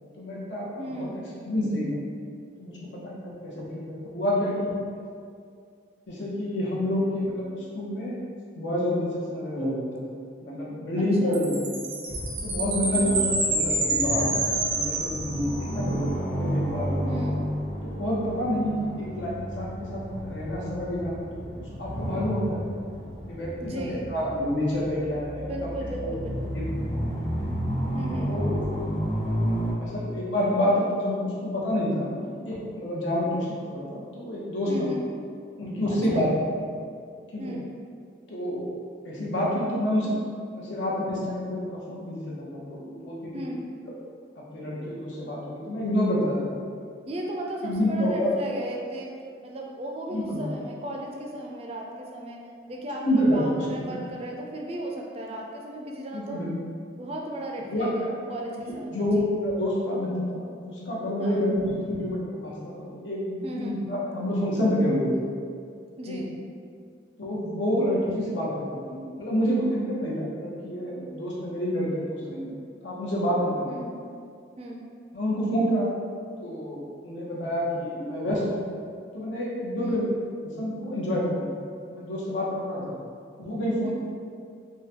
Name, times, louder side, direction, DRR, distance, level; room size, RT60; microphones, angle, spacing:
voice 1, 0.2-1.1 1.4-1.9 2.6-4.8 6.1-8.1 8.6-10.0 10.4-11.6 12.4-14.3 14.6-17.1 17.8-21.4 21.8-22.6 23.3-25.4 26.0-26.1 26.5-26.6 26.9-27.0 28.3-28.7 29.8-32.1 32.5-34.9 35.6-36.3 37.3-37.5 38.3-38.7 39.0-40.1 40.5-43.5 44.4-46.5 47.6-48.3 50.1-50.5 53.0-53.9 56.1-56.5 57.7-57.9 58.7-65.1 66.1-66.2 67.2-72.6 72.8-73.7 75.1-75.9 76.4-78.6 79.1-80.0 80.6-83.0 83.4-83.9, equal, 85° left, -5 dB, 0.8 m, -28 dB
voice 2, 0.8-1.2 11.0-11.4 12.9-13.2 17.0-17.4 23.6-24.1 25.5-26.6 27.9-28.4 34.7-35.0 35.9-36.2 37.4-37.7 43.3-43.6 47.1-56.4 57.0-59.3 61.2-61.5 63.4-63.8 66.0-66.3 73.7-73.9 74.6-74.8 79.8-80.1 83.8-83.9, right 1 dB, 30° right, 0 dB, 0.3 m, -36 dB
Chime, 11.3-15.8, right 2 dB, 85° right, 0.6 m, -28 dB
sound 1, 12.1-29.7, equal, 55° left, 1.0 m, -32 dB
3.7 x 2.2 x 2.8 m, 2.3 s
head